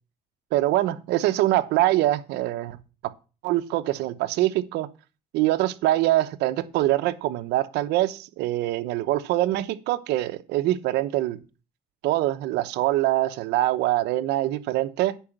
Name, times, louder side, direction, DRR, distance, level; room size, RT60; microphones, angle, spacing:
voice 1, 0.5-2.8 3.0-3.1 3.4-4.9 5.3-11.4 12.0-15.2, right 15 dB, 90° right, 13 dB, 0.9 m, -24 dB
10.5 x 5.0 x 7.3 m, 0.33 s
cardioid pair, 110°, 17 cm